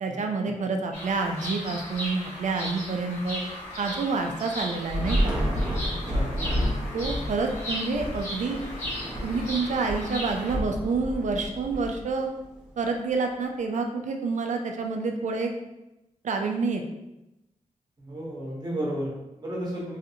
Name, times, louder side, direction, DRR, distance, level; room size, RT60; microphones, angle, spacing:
voice 1, 0.0-3.4 3.8-5.4 6.9-8.6 9.2-12.3 12.8-15.5 16.2-16.8, right 4 dB, 65° right, 3 dB, 0.4 m, -28 dB
Bird vocalization bird call bird song, 0.9-10.6, equal, 65° left, 1.3 m, -36 dB
Thunder / Rain, 4.9-12.4, equal, 5° right, 0.7 m, -30 dB
voice 2, 6.0-6.4 18.0-20.0, right 1 dB, 30° right, -4 dB, 1.0 m, -33 dB
3.2 x 2.6 x 2.7 m, 0.93 s
wide cardioid pair, 105°, 13 cm